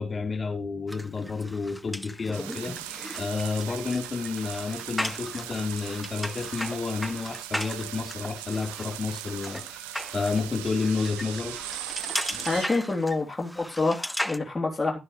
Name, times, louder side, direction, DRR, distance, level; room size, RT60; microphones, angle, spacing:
voice 1, 0.0-11.6 12.3-12.5, left 4 dB, 40° left, 4.1 m, -31 dB
sound 1, 0.9-14.4, equal, ahead, 1.0 m, -37 dB
sound 2, 2.3-12.7, right 17 dB, 85° right, 0.5 m, -39 dB
voice 2, 12.4-15.0, left 3 dB, 20° left, 3.4 m, -27 dB
12.0 x 9.9 x 3.3 m
hypercardioid pair, 45°, 0 cm